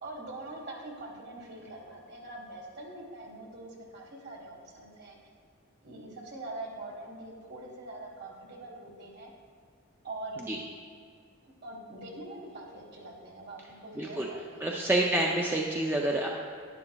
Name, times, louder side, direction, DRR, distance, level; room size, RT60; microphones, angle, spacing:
voice 1, 0.0-5.2 5.8-9.3 10.0-10.4 11.4-14.7, right 2 dB, 50° right, 0 dB, 1.5 m, -43 dB
voice 2, 14.0-14.3 14.6-16.3, right 1 dB, 10° right, -1 dB, 0.4 m, -28 dB
11.0 x 10.5 x 2.3 m, 2.1 s
head